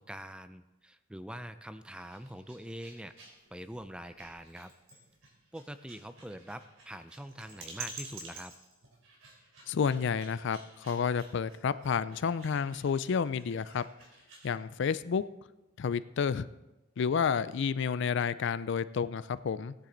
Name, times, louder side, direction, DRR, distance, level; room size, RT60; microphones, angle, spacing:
voice 1, 0.0-3.1 3.5-4.7 5.5-8.5, right 1 dB, 5° right, 11 dB, 0.4 m, -44 dB
sound 1, 1.9-14.6, right 4 dB, 80° right, 3.4 m, -50 dB
voice 2, 9.7-13.8 14.4-15.2 15.8-16.5 17.0-19.7, left 6 dB, 60° left, 16 dB, 0.4 m, -30 dB
16.5 x 9.9 x 3.9 m, 1.0 s
head